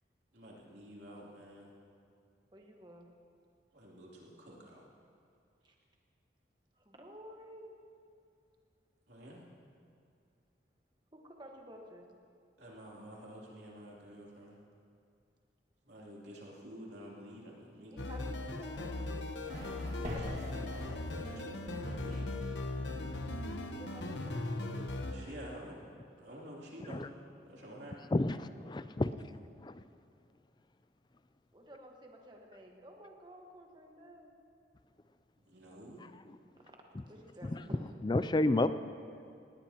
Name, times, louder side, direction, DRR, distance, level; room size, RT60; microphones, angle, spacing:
voice 1, 0.3-1.7 3.7-4.8 9.1-9.5 12.6-14.6 15.8-17.9 19.9-20.7 21.1-22.3 25.1-25.8 26.1-27.1 27.4-28.0 35.5-36.1, equal, 65° right, -4 dB, 3.1 m, -49 dB
voice 2, 2.5-3.1 5.6-5.7 6.8-7.7 11.1-12.2 17.9-19.1 20.0-20.6 23.7-24.7 31.5-34.4 36.6-37.8, equal, 25° right, 1 dB, 1.4 m, -52 dB
sound 1, 18.0-25.1, left 2 dB, 75° left, 1.0 m, -38 dB
sound 2, 18.8-21.5, equal, 40° right, 2.0 m, -46 dB
voice 3, 28.1-29.1 29.6-29.8 37.4-37.6 38.0-38.7, left 2 dB, 25° left, 12 dB, 0.4 m, -30 dB
19.0 x 18.0 x 3.0 m, 2.4 s
head